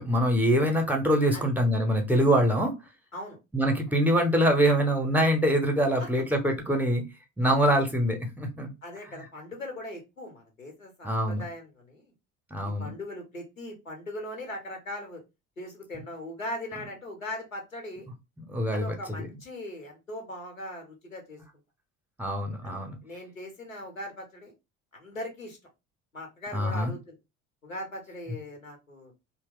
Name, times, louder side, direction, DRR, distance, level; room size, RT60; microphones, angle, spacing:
voice 1, 0.0-2.7 3.5-7.0 7.4-8.7 11.0-11.4 12.5-12.9 18.5-19.3 22.2-23.0 26.5-26.9, equal, 5° right, 3 dB, 0.6 m, -24 dB
voice 2, 8.8-12.1 12.6-15.2 15.6-18.1 18.7-21.4 22.6-22.7 23.0-24.5 24.9-25.6 26.1-27.2 27.6-29.1, left 1 dB, 85° left, 3 dB, 0.8 m, -39 dB
2.8 x 2.0 x 3.5 m, 0.25 s
figure-of-eight pair, 60°, 40 cm